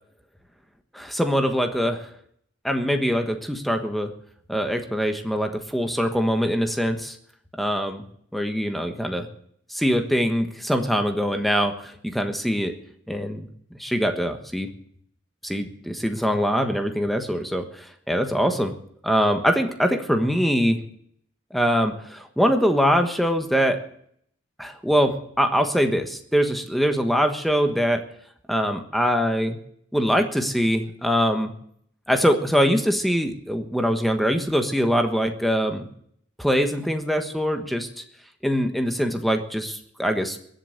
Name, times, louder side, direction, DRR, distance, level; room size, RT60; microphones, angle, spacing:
voice 1, 0.9-2.1 2.6-4.1 4.5-7.2 7.6-8.0 8.3-9.3 9.7-12.8 13.1-13.5 13.8-14.7 15.4-18.7 19.0-20.8 21.5-23.8 24.6-28.0 28.5-29.6 29.9-31.5 32.1-35.9 36.4-38.0 38.4-40.4, equal, ahead, 6 dB, 1.3 m, -23 dB
22.0 x 7.9 x 6.6 m, 0.67 s
head